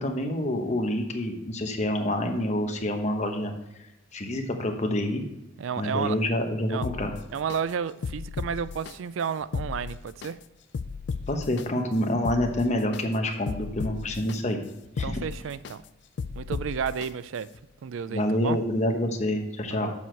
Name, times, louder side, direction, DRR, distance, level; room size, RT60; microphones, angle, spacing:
voice 1, 0.0-3.5 4.1-5.2 5.8-7.1 11.3-14.6 15.0-15.2 18.1-19.9, left 1 dB, 35° left, 4 dB, 1.0 m, -27 dB
voice 2, 5.6-6.2 6.7-6.9 7.3-10.4 15.0-15.8 16.3-17.5 17.8-18.6 19.7-19.9, right 7 dB, 85° right, 16 dB, 0.4 m, -31 dB
sound 1, 6.8-7.6 8.0-8.9 9.4-10.3 10.7-11.7 12.1-13.0 13.5-14.4 14.8-15.7 16.2-17.1 17.5-17.6, left 5 dB, 60° left, 0.4 m, -34 dB
7.2 x 6.3 x 4.4 m, 0.90 s
head